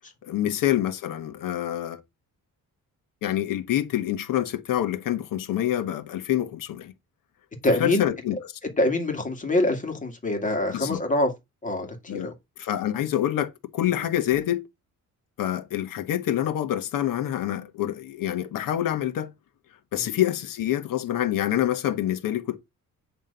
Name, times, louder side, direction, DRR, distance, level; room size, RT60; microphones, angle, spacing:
voice 1, 0.2-2.0 3.2-6.9 7.7-8.4 10.7-11.0 12.1-14.6 15.4-19.3 19.9-22.6, left 12 dB, 80° left, 1.4 m, -26 dB
voice 2, 7.6-8.1 8.8-11.3 11.6-12.3 20.0-20.1, left 1 dB, 25° left, 2.2 m, -25 dB
9.1 x 3.4 x 6.8 m
cardioid pair, 150°, 32 cm